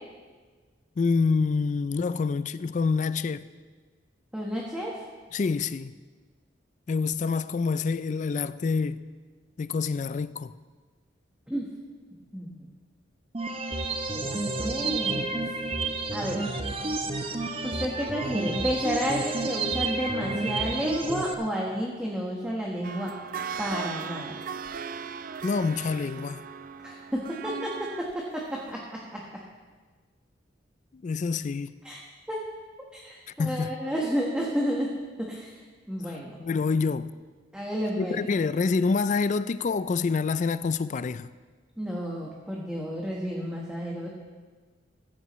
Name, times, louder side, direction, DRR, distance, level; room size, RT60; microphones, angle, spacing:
voice 1, 1.0-3.5 5.3-5.9 6.9-9.0 9.6-10.5 25.4-26.4 31.0-31.7 33.4-33.7 36.4-37.1 38.0-41.3, left 4 dB, 40° left, 0.3 m, -27 dB
voice 2, 4.3-5.0 11.5-11.7 12.3-12.7 14.1-15.4 16.1-16.4 17.6-23.1 23.6-24.4 26.8-28.4 28.7-29.2 31.8-32.0 32.3-32.4 32.9-34.9 35.2-35.6 35.9-36.4 37.5-38.2 41.8-44.2, equal, 5° right, 1.3 m, -31 dB
sound 1, 13.3-21.3, right 2 dB, 30° right, 0.8 m, -30 dB
sound 2, 22.8-28.1 28.7-28.8, right 6 dB, 45° right, 0.4 m, -38 dB
15.0 x 14.0 x 3.1 m
head